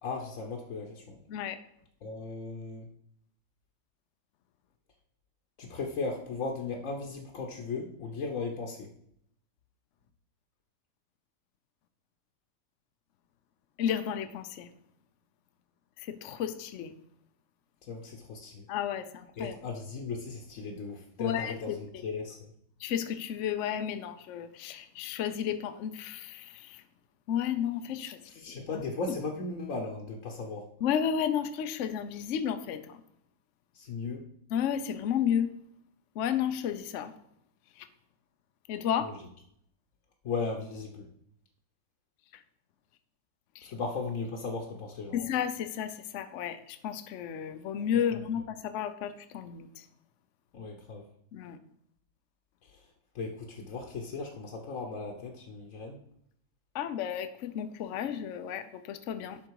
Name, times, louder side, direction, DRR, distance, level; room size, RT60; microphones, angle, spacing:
voice 1, 0.0-1.2 2.0-2.9 5.6-8.9 17.9-18.7 19.4-22.5 28.3-30.7 33.7-34.2 39.0-39.1 40.2-41.1 43.6-45.2 50.5-51.0 52.7-52.8 53.1-56.0, left 4 dB, 55° left, 1 dB, 1.0 m, -37 dB
voice 2, 13.8-14.7 16.0-16.9 18.7-19.6 21.2-22.0 22.8-26.8 27.3-28.8 30.8-33.0 34.5-35.5 36.2-37.1 37.8-37.9 38.7-39.1 43.5-43.7 45.1-49.9 51.3-51.6 56.7-59.4, left 9 dB, 85° left, 9 dB, 0.6 m, -32 dB
11.5 x 3.8 x 4.6 m, 0.71 s
omnidirectional pair, 2.1 m